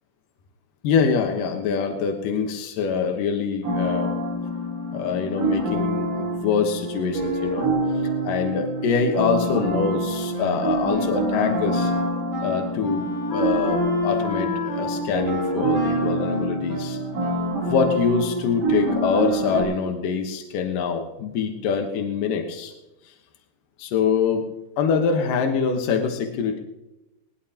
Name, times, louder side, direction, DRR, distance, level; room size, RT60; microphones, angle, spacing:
voice 1, 0.8-4.1 4.9-7.7 8.2-11.9 12.4-17.0 17.7-22.7 23.8-24.5 24.8-26.6, left 6 dB, 80° left, 4 dB, 1.9 m, -24 dB
sound 1, 3.6-19.6, right 1 dB, 70° right, 5.7 m, -26 dB
Wind instrument woodwind instrument, 10.3-17.8, left 2 dB, 15° left, 5.6 m, -30 dB
20.5 x 19.5 x 2.9 m, 0.97 s
omnidirectional pair, 5.7 m